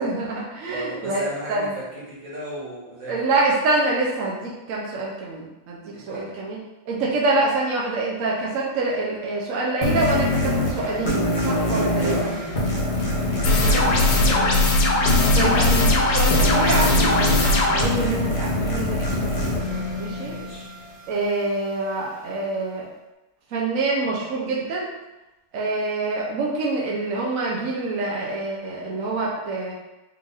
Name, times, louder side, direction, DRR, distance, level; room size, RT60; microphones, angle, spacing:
voice 1, 0.0-1.7 3.1-5.8 6.1-6.6 6.9-12.3 13.4-13.6 15.3-19.7 20.0-20.4 21.1-22.9 23.5-24.9 25.5-29.7, right 2 dB, 70° right, -4 dB, 0.8 m, -26 dB
voice 2, 0.7-3.3 5.9-6.4 12.0-12.4 13.2-14.7 20.1-20.7, right 1 dB, 45° right, -7 dB, 1.7 m, -35 dB
sound 1, 9.8-21.0, left 1 dB, 40° left, 0.8 m, -24 dB
sound 2, 13.4-17.8, left 2 dB, 80° left, 1.5 m, -19 dB
4.4 x 2.5 x 3.9 m, 1.0 s
omnidirectional pair, 2.2 m